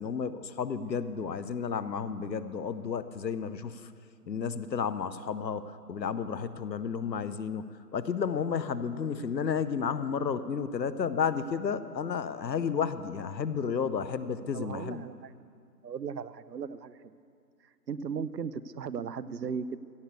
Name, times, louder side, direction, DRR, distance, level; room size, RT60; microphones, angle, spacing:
voice 1, 0.0-3.9 4.3-7.7 7.9-15.1, left 6 dB, 90° left, 14 dB, 0.8 m, -32 dB
voice 2, 14.5-15.3 15.8-17.2 17.9-19.8, right 6 dB, 75° right, 16 dB, 0.7 m, -37 dB
16.0 x 6.7 x 8.1 m, 2.3 s
figure-of-eight pair, 170°, 49 cm